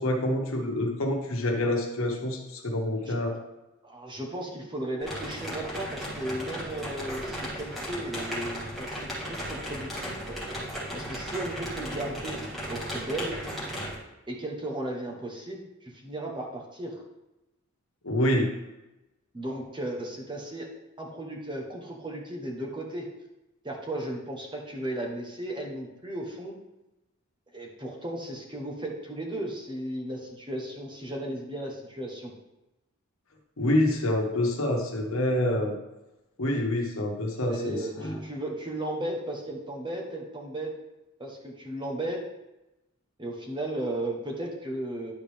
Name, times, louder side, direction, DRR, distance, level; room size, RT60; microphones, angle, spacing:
voice 1, 0.0-3.3 18.0-18.5 33.6-35.8 36.4-38.2, left 1 dB, 70° left, 1 dB, 1.3 m, -27 dB
voice 2, 3.8-10.4 10.9-12.4 12.7-13.4 14.3-17.0 19.3-20.7 21.0-23.1 23.6-26.6 27.5-32.3 37.5-40.7 41.2-42.2 43.2-45.1, right 1 dB, 20° right, 0 dB, 1.1 m, -35 dB
sound 1, 5.0-14.0, equal, ahead, 2.0 m, -36 dB
10.5 x 4.8 x 3.5 m, 0.99 s
head